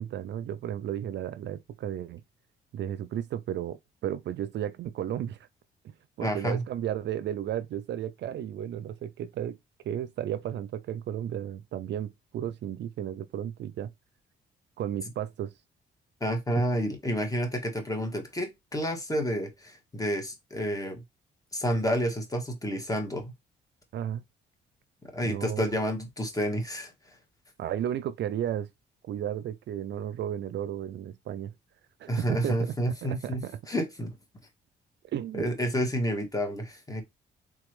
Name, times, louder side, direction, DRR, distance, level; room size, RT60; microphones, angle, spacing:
voice 1, 0.0-2.2 2.7-5.5 6.2-9.6 9.8-13.9 14.8-15.5 23.9-24.2 25.2-25.8 27.6-28.7 29.0-31.5 32.0-32.8 33.0-33.6 35.0-35.6, right 10 dB, 60° right, 0.4 m, -33 dB
voice 2, 6.2-6.6 16.2-21.0 21.5-23.3 25.1-27.2 32.1-34.1 35.3-37.0, equal, 15° left, 1.4 m, -30 dB
3.7 x 3.0 x 3.2 m
cardioid pair, 90°, 20 cm